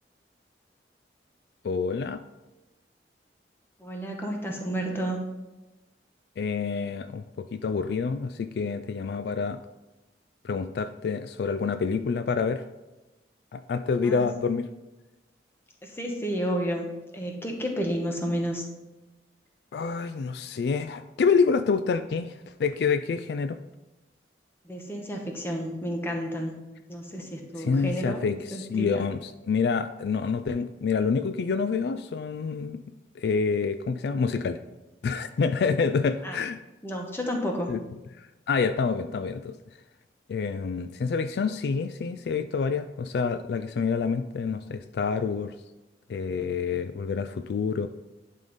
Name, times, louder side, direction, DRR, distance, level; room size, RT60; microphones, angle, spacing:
voice 1, 1.6-2.2 6.4-9.6 10.4-12.6 13.5-14.7 19.7-23.6 27.6-32.8 33.2-34.6 35.0-36.6 37.7-37.8 38.2-39.5 40.3-45.5 46.1-47.9, left 5 dB, 65° left, 10 dB, 0.3 m, -27 dB
voice 2, 3.8-5.2 14.0-14.3 15.8-16.9 17.1-18.7 24.6-26.6 26.9-28.2 28.5-29.1 36.2-36.4 36.8-37.7, equal, 15° left, 1 dB, 1.0 m, -31 dB
10.5 x 3.8 x 4.0 m, 1.0 s
head